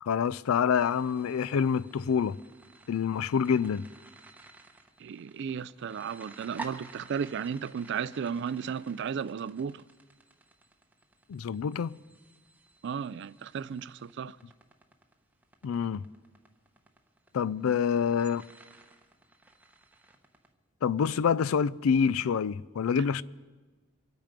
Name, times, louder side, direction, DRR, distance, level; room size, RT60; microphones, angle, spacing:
voice 1, 0.0-2.4 2.9-3.9 11.3-12.0 15.6-16.0 17.3-18.4 20.8-23.2, left 7 dB, 80° left, 0.4 m, -27 dB
sound 1, 0.7-20.5, right 3 dB, 10° right, 0.8 m, -52 dB
voice 2, 5.0-9.8 12.8-14.4, right 7 dB, 55° right, 0.3 m, -34 dB
24.5 x 9.0 x 5.1 m
head